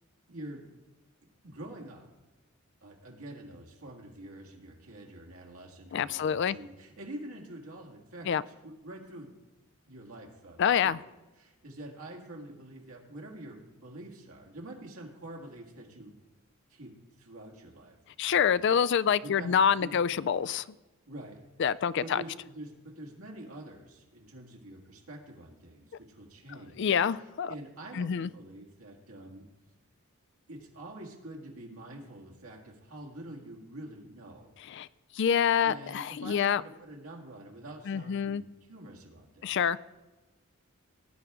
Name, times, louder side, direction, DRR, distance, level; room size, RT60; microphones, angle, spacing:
voice 1, 0.3-0.7 1.4-2.1 2.8-9.3 9.9-11.0 11.4-16.2 16.7-18.0 18.2-18.7 19.2-20.1 21.1-21.4 22.0-29.5 30.5-34.5 35.6-39.6, right 1 dB, 85° right, 0 dB, 1.9 m, -46 dB
voice 2, 5.9-6.6 8.3-8.4 10.6-11.0 18.2-20.7 21.6-22.2 26.8-27.5 27.9-28.3 34.7-34.9 35.1-36.6 37.9-38.4 39.4-39.8, left 7 dB, 55° left, 17 dB, 0.3 m, -26 dB
18.5 x 9.2 x 3.6 m, 1.1 s
head